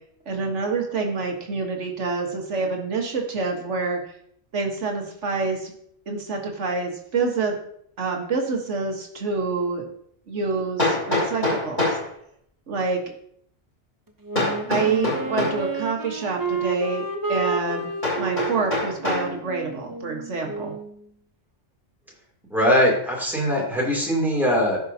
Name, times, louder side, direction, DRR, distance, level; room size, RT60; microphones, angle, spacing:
voice 1, 0.2-4.0 4.5-5.7 6.1-7.6 8.0-9.8 10.3-12.0 12.7-13.0 14.6-17.9 18.2-20.7, right 4 dB, 80° right, 2 dB, 1.7 m, -27 dB
Hammer, 9.2-9.3 10.8-12.1 14.4-15.7 18.0-19.3, left 2 dB, 40° left, 3.9 m, -25 dB
Wind instrument woodwind instrument, 14.2-20.9, right 3 dB, 20° right, 0.7 m, -31 dB
voice 2, 22.5-24.8, equal, ahead, -4 dB, 2.9 m, -21 dB
15.0 x 5.5 x 2.8 m, 0.67 s
omnidirectional pair, 1.2 m